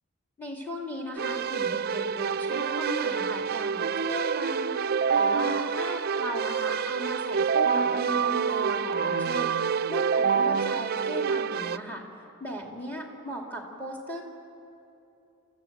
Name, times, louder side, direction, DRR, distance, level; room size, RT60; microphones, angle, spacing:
voice 1, 0.4-4.7 5.2-12.0 12.4-14.2, equal, 10° left, 0 dB, 2.9 m, -37 dB
Keyboard (musical), 1.2-11.8, right 6 dB, 45° right, 0.4 m, -27 dB
29.0 x 14.5 x 7.6 m, 2.8 s
head